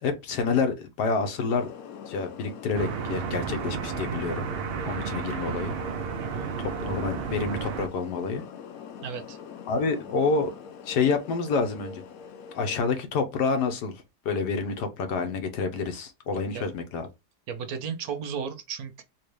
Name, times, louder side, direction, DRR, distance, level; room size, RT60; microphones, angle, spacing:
voice 1, 0.0-1.7 2.1-4.5 4.8-5.7 6.6-8.4 9.7-10.5 10.9-12.0 12.5-17.1, left 4 dB, 85° left, 1.5 m, -28 dB
sound 1, 1.5-12.9, left 6 dB, 70° left, 1.0 m, -43 dB
sound 2, 2.7-7.9, right 6 dB, 90° right, 0.5 m, -32 dB
voice 2, 6.2-6.5 9.0-9.4 16.5-16.6 17.5-19.0, right 7 dB, 70° right, 1.2 m, -34 dB
4.2 x 2.4 x 3.3 m
omnidirectional pair, 1.7 m